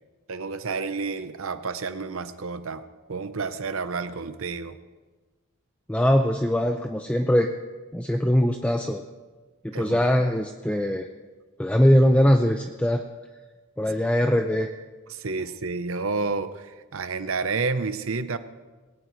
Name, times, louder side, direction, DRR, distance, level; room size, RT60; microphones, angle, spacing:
voice 1, 0.3-2.8 3.1-4.8 9.7-10.0 15.1-18.4, right 4 dB, 65° right, 10 dB, 0.8 m, -30 dB
voice 2, 5.9-7.5 7.9-9.0 9.6-11.1 11.6-13.0 13.8-14.7, equal, 5° left, 4 dB, 0.5 m, -21 dB
20.5 x 17.5 x 3.2 m, 1.3 s
head